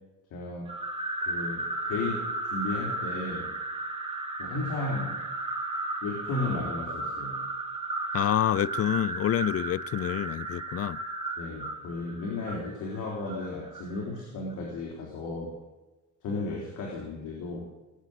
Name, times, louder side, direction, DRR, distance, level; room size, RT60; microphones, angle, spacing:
voice 1, 0.3-0.7 1.3-3.5 4.4-5.1 6.0-7.3 11.4-15.5 16.2-17.7, left 3 dB, 80° left, 3.9 m, -34 dB
sound 1, 0.7-14.0, right 2 dB, 20° right, 2.9 m, -34 dB
voice 2, 8.1-11.0, left 11 dB, 50° left, 0.6 m, -27 dB
19.5 x 8.2 x 8.0 m
cardioid pair, 90°, 30 cm